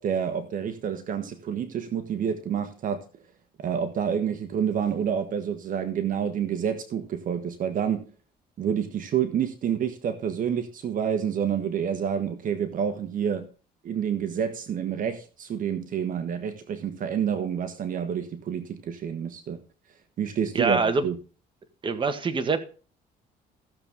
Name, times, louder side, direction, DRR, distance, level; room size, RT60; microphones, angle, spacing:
voice 1, 0.0-3.0 3.6-8.1 8.6-13.5 13.8-19.6 20.2-21.2, right 8 dB, 55° right, 1.4 m, -28 dB
voice 2, 20.5-21.1 21.8-22.6, right 4 dB, 30° right, 1.7 m, -24 dB
15.5 x 7.1 x 3.7 m
cardioid pair, 110°, 17 cm